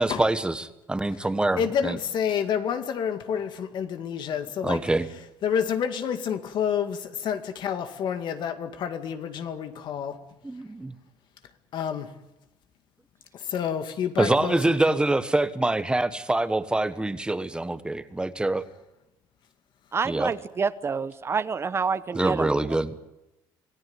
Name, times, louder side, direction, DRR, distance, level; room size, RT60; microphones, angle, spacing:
voice 1, 0.0-2.0 4.6-5.1 10.4-10.9 14.2-18.6 20.0-20.3 22.1-23.0, right 2 dB, 10° right, 1.3 m, -25 dB
voice 2, 1.6-4.8 5.4-10.2 11.7-12.1 13.5-15.0, left 8 dB, 60° left, 2.1 m, -29 dB
voice 3, 19.9-22.5, right 5 dB, 30° right, 0.9 m, -27 dB
26.5 x 17.5 x 9.6 m
cardioid pair, 115°, 9 cm